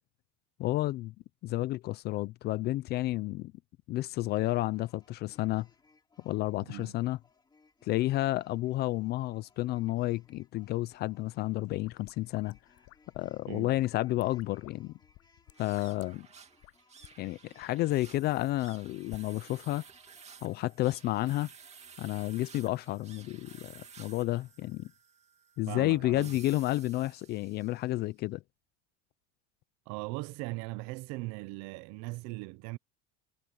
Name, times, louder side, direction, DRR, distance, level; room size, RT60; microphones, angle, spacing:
voice 1, 0.6-1.1 1.4-3.5 3.9-5.7 6.2-7.2 7.8-12.6 13.1-14.9 15.6-16.3 17.2-19.8 20.4-21.5 22.0-24.9 25.6-28.4, left 17 dB, 30° left, 0.4 m, -31 dB
sound 1, 4.2-24.0, left 4 dB, 10° left, 2.7 m, -67 dB
voice 2, 6.6-6.9 13.5-13.7 25.7-26.3 29.9-32.8, right 23 dB, 50° right, 0.8 m, -39 dB
sound 2, 11.6-13.3 13.8-14.8 15.0-16.0 16.6-16.7 17.0-17.1 17.5-18.1 18.6-19.2, left 22 dB, 50° left, 6.3 m, -53 dB
sound 3, 15.5-28.0, right 6 dB, 20° right, 2.4 m, -55 dB
cardioid pair, 160°, 33 cm